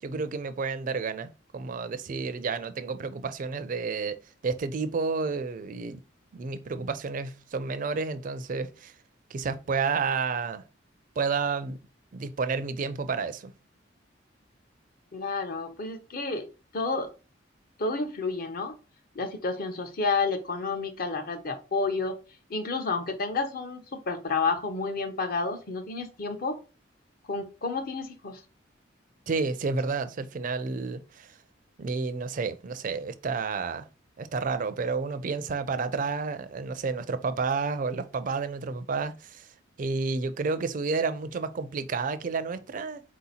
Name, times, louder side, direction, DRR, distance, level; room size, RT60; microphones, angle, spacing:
voice 1, 0.0-4.2 4.4-6.0 6.3-8.9 9.3-10.6 11.2-11.8 12.1-13.5 29.3-31.4 31.8-33.9 34.2-39.5 39.8-43.0, right 4 dB, 45° right, 0.4 m, -30 dB
voice 2, 15.1-16.5 16.7-17.1 17.8-18.8 19.1-22.1 22.5-26.6 27.3-28.4, left 4 dB, 50° left, 0.8 m, -30 dB
4.2 x 2.8 x 4.1 m
head